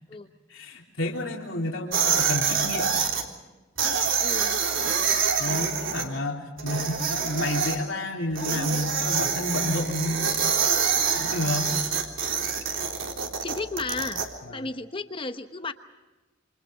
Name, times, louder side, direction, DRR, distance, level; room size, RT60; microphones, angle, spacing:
voice 1, 0.5-3.0 5.4-10.5 11.1-11.9 14.5-14.7, left 1 dB, 85° left, -1 dB, 3.4 m, -30 dB
sound 1, 1.9-3.2 3.8-6.0 6.6-7.8 8.4-14.3, right 6 dB, 75° right, 3.6 m, -26 dB
voice 2, 4.2-4.6 5.4-5.7 13.4-14.2 14.5-15.7, left 3 dB, 25° left, 8 dB, 1.0 m, -33 dB
28.0 x 26.5 x 5.2 m, 1.2 s
head